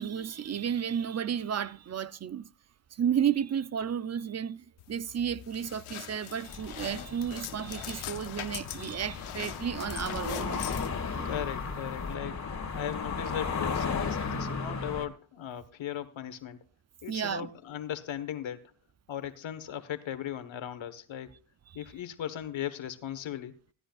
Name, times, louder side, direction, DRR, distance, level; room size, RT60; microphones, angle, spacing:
voice 1, 0.0-2.5 2.9-10.6 11.1-11.4 12.6-12.8 17.1-17.5, right 8 dB, 35° right, 0.5 m, -32 dB
sound 1, 4.8-12.1, left 13 dB, 85° left, 0.9 m, -42 dB
sound 2, 6.5-15.1, left 5 dB, 35° left, 2.1 m, -35 dB
voice 2, 11.2-12.4 12.7-16.6 17.0-18.7 19.1-21.3 21.7-23.6, left 10 dB, 70° left, 1.4 m, -37 dB
16.5 x 13.0 x 2.4 m
cardioid pair, 85°, 48 cm